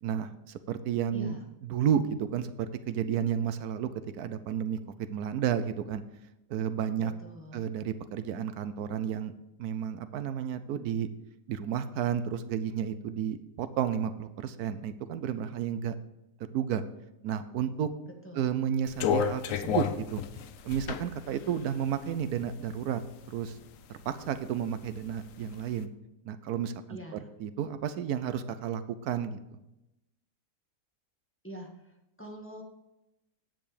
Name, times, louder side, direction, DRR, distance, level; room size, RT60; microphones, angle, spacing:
voice 1, 0.0-1.4 1.6-3.9 4.2-4.8 5.1-6.0 6.5-7.1 7.5-9.3 9.6-11.1 11.5-16.0 16.5-16.8 17.2-17.9 18.3-20.2 20.6-23.0 23.3-23.6 23.9-25.9 26.2-27.0 27.4-29.4, right 9 dB, 85° right, 12 dB, 1.1 m, -32 dB
voice 2, 1.1-1.4 7.0-7.6 18.2-18.5 26.9-27.3 31.4-32.6, right 1 dB, 10° left, 0 dB, 1.4 m, -44 dB
sound 1, 18.9-22.8 23.3-24.3 24.6-25.6, left 8 dB, 65° left, 0.9 m, -32 dB
9.6 x 7.6 x 5.0 m, 0.92 s
omnidirectional pair, 1.6 m